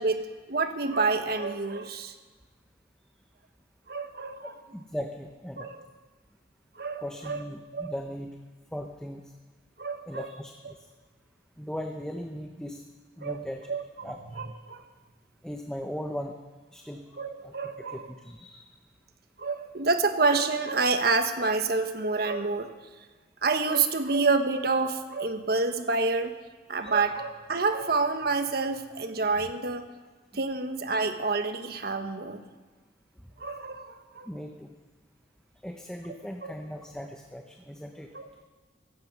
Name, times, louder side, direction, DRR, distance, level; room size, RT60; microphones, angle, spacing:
voice 1, 0.0-2.1 3.9-4.5 5.6-5.8 6.8-7.4 7.7-7.9 9.8-10.3 13.2-14.1 14.4-14.8 17.2-18.0 19.4-22.7 23.4-26.3 26.7-29.8 30.3-32.4 33.4-34.3 36.4-36.5 38.1-38.2, right 3 dB, 60° right, 8 dB, 1.3 m, -28 dB
voice 2, 4.7-5.7 7.0-8.3 8.7-9.2 10.1-10.8 11.6-12.8 13.2-13.7 14.0-14.4 15.4-16.4 16.7-17.0 17.4-18.7 26.8-26.9 29.3-29.5 30.3-30.4 34.3-34.7 35.6-38.1, equal, 5° left, 3 dB, 0.8 m, -38 dB
15.5 x 15.0 x 6.1 m, 1.4 s
head